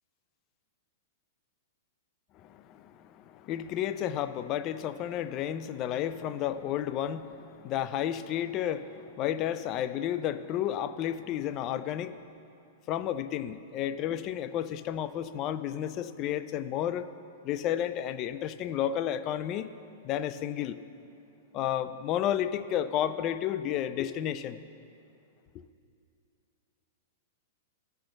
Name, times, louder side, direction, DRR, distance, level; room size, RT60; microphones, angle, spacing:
voice 1, 2.3-12.2 12.9-17.1 17.4-19.7 20.0-20.8 21.5-24.6, left 10 dB, 35° left, 13 dB, 0.3 m, -32 dB
12.5 x 4.4 x 6.5 m, 2.6 s
hypercardioid pair, 135°, 0 cm